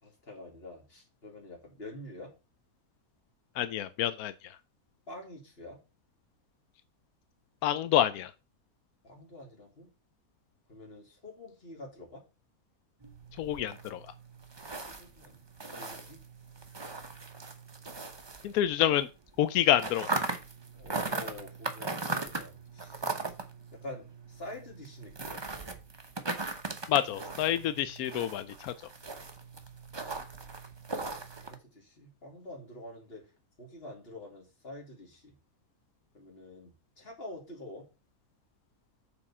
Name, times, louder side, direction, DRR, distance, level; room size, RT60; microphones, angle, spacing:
voice 1, 0.0-2.3 5.1-5.8 9.0-9.9 10.7-12.2 14.8-15.4 15.7-16.2 20.7-23.1 23.7-25.4 31.4-33.3 33.6-35.3 36.1-37.9, left 1 dB, 40° left, 2.8 m, -47 dB
voice 2, 3.6-4.3 7.6-8.3 13.4-14.0 18.4-19.1 19.4-20.1 26.9-28.7, left 11 dB, 90° left, 1.1 m, -27 dB
sound 1, 13.0-19.0 19.3-31.6, right 3 dB, 25° right, 0.7 m, -39 dB
7.1 x 4.8 x 5.5 m
omnidirectional pair, 1.5 m